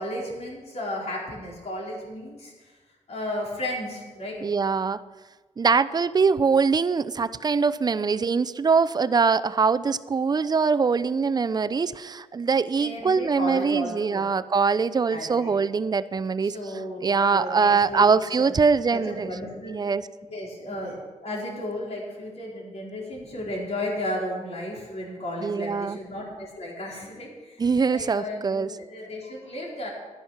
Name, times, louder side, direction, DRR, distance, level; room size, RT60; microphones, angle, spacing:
voice 1, 0.0-2.7 3.1-4.5 12.8-14.3 15.1-15.5 16.4-18.0 18.4-18.5 18.9-19.8 20.3-29.9, left 1 dB, 60° left, -4 dB, 4.8 m, -34 dB
voice 2, 4.4-5.0 5.6-16.6 17.0-19.3 19.7-20.0 25.4-26.0 27.6-28.7, right 5 dB, 35° right, 16 dB, 0.5 m, -23 dB
13.0 x 10.0 x 5.8 m, 1.3 s
cardioid pair, 95°, 12 cm